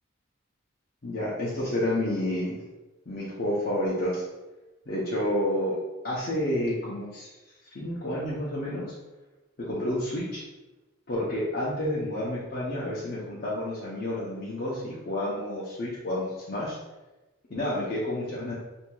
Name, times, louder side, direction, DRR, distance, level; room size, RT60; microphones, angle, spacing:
voice 1, 1.0-2.6 3.1-4.2 4.9-5.8 6.0-7.3 7.7-8.8 9.6-10.4 11.1-16.8 17.5-18.6, left 1 dB, 45° left, -7 dB, 0.6 m, -30 dB
4.5 x 2.7 x 2.3 m, 1.1 s
head